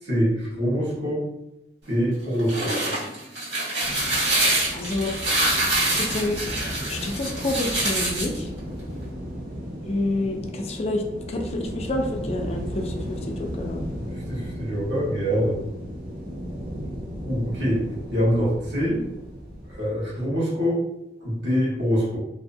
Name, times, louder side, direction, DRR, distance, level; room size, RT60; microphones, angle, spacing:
voice 1, 0.0-1.2 1.9-2.8 14.0-15.6 17.2-17.8 18.1-19.0 19.7-20.8 21.2-22.2, equal, 70° right, -7 dB, 1.2 m, -24 dB
sound 1, 2.2-8.4, right 1 dB, 90° right, 1.2 m, -25 dB
sound 2, 3.8-19.9, equal, 55° right, 0.6 m, -35 dB
voice 2, 4.7-5.1 5.9-6.4 6.9-8.5 9.9-11.0 11.3-13.9, left 2 dB, 35° left, 2 dB, 0.4 m, -28 dB
2.7 x 2.1 x 2.6 m, 0.86 s
head